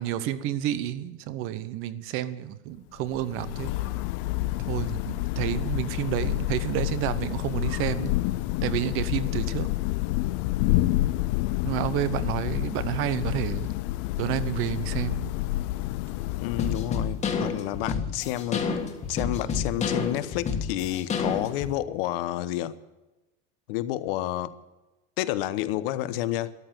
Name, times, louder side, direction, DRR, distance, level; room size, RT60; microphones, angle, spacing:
voice 1, 0.0-4.0 4.6-8.1 8.6-9.7 11.6-13.7 14.2-15.3, right 12 dB, 40° right, 14 dB, 1.0 m, -30 dB
Thunder / Rain, 3.0-17.4, left 17 dB, 40° left, 0.4 m, -29 dB
voice 2, 16.4-18.6 19.1-22.7 23.7-24.5 25.2-26.5, left 14 dB, 60° left, 13 dB, 1.1 m, -30 dB
sound 1, 16.6-21.7, left 5 dB, 20° left, 1.8 m, -29 dB
14.0 x 12.5 x 7.7 m, 1.1 s
supercardioid pair, 160°, 33 cm